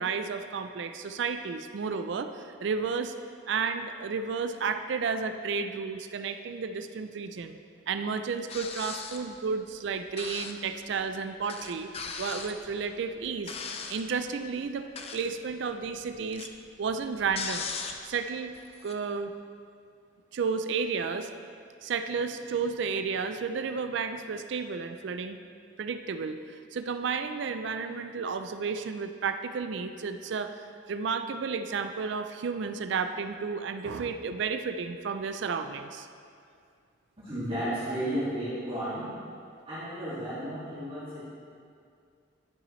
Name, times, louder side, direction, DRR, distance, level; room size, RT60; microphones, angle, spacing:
voice 1, 0.0-3.1 3.5-7.6 7.9-11.9 12.2-13.6 13.9-16.5 16.8-17.7 18.0-18.5 18.8-19.3 20.3-21.3 21.8-25.4 25.8-30.6 30.9-36.1, right 5 dB, 65° right, 9 dB, 0.4 m, -32 dB
sound 1, 8.5-9.3 10.2-10.7 11.0-11.1 11.5-14.1 14.8-15.4 15.7-18.2 18.5-18.9, left 5 dB, 30° left, 0.4 m, -38 dB
voice 2, 37.2-39.1 39.7-41.2, right 1 dB, 25° right, -11 dB, 2.2 m, -33 dB
11.0 x 6.9 x 3.1 m, 2.3 s
head